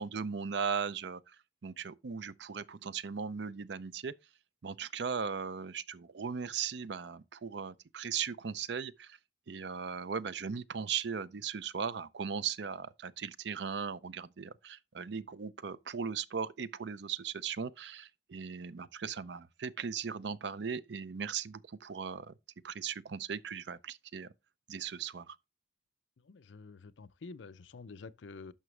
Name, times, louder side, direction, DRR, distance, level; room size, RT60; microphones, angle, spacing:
voice 1, 0.0-1.4 1.6-4.1 4.6-9.2 9.5-22.3 22.6-24.3 24.7-25.4, right 6 dB, 65° right, 0.5 m, -38 dB
voice 2, 26.2-28.5, left 4 dB, 75° left, 0.5 m, -48 dB
11.0 x 5.9 x 3.2 m
head